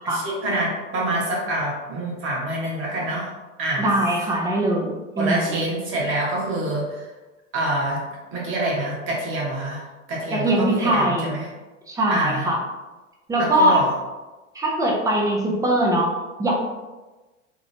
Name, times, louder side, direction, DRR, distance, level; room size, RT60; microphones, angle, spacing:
voice 1, 0.0-3.3 3.6-3.9 5.2-7.1 7.5-8.0 8.3-9.8 10.1-11.5 12.1-12.5 13.4-13.9, right 1 dB, 30° right, -3 dB, 1.2 m, -26 dB
voice 2, 3.8-5.5 10.3-11.3 11.9-12.6 13.3-13.8 14.5-16.5, right 1 dB, 10° right, -2 dB, 0.4 m, -21 dB
3.0 x 2.9 x 2.7 m, 1.2 s
figure-of-eight pair, 95°, 40 cm